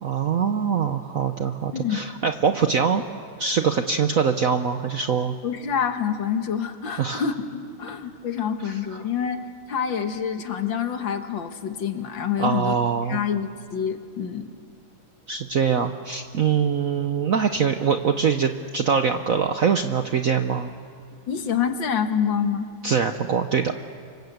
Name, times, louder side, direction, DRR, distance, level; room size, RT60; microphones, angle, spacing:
voice 1, 0.0-3.0 3.4-5.3 7.0-7.2 8.6-8.7 12.4-13.2 15.3-20.7 22.8-23.7, right 6 dB, 60° right, 7 dB, 0.9 m, -23 dB
voice 2, 1.7-2.0 5.4-12.8 13.1-14.5 21.3-22.7, left 7 dB, 65° left, 7 dB, 2.0 m, -27 dB
29.0 x 25.5 x 8.0 m, 2.3 s
omnidirectional pair, 2.3 m